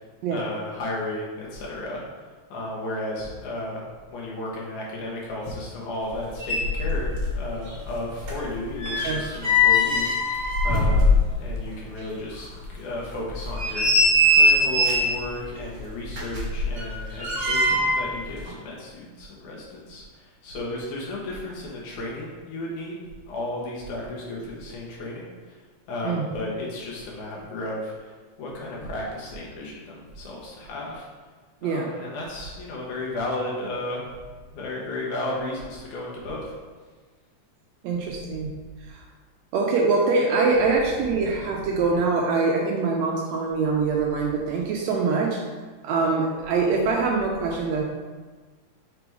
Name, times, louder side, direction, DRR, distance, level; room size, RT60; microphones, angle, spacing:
voice 1, 0.3-2.0 2.5-12.5 12.7-23.0 23.3-25.6 25.9-31.1 31.6-34.1 34.5-36.6, left 1 dB, 80° left, -3 dB, 2.6 m, -34 dB
sound 1, 6.1-6.2 6.4-7.4 7.7-11.6 12.0-12.1 12.6-12.7 13.3-15.2 16.1-18.1 18.4-18.5, left 1 dB, 45° right, 1.5 m, -21 dB
voice 2, 37.8-38.5 38.9-39.0 39.5-45.4 45.8-47.8, right 4 dB, 80° right, 0 dB, 1.6 m, -24 dB
5.8 x 3.4 x 4.7 m, 1.4 s
omnidirectional pair, 3.4 m